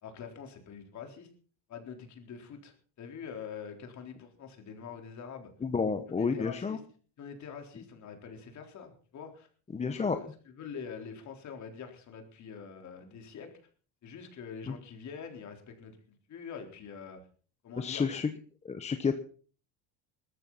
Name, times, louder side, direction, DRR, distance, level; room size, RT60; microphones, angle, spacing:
voice 1, 0.0-1.3 1.7-5.5 6.2-6.8 7.2-9.5 9.8-13.5 14.0-16.0 16.3-17.2 17.6-18.0, left 6 dB, 40° left, 4 dB, 4.1 m, -45 dB
voice 2, 5.6-6.8 9.7-10.2 14.7-14.8 17.8-18.3 18.6-19.2, left 5 dB, 15° left, 8 dB, 1.0 m, -30 dB
19.5 x 14.0 x 4.1 m, 0.40 s
cardioid pair, 135°, 42 cm